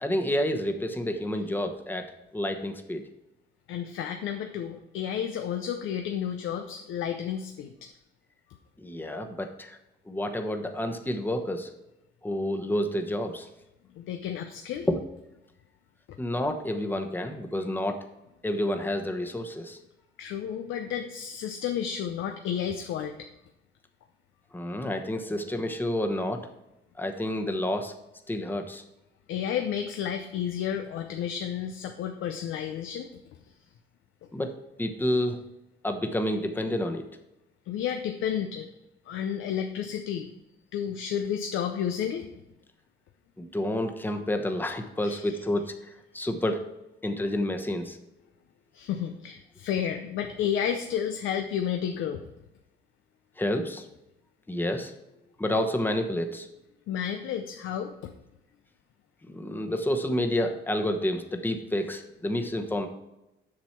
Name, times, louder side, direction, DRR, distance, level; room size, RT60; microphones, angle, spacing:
voice 1, 0.0-3.0 8.8-9.8 10.1-11.7 12.2-13.5 14.9-15.0 16.2-18.0 18.4-19.8 24.5-26.5 27.0-27.9 28.3-28.8 34.3-34.5 34.8-35.4 35.8-37.0 43.4-45.7 46.1-46.6 47.0-48.0 53.4-53.8 54.5-54.9 55.4-56.5 59.3-62.9, left 1 dB, 10° left, 5 dB, 1.0 m, -29 dB
voice 2, 3.7-7.7 14.0-14.9 20.2-23.2 29.3-33.1 37.7-38.7 39.1-40.3 40.7-42.2 45.0-45.4 48.7-52.2 56.9-57.9, left 9 dB, 85° left, 6 dB, 0.6 m, -31 dB
7.5 x 6.1 x 4.5 m, 0.91 s
cardioid pair, 90°, 20 cm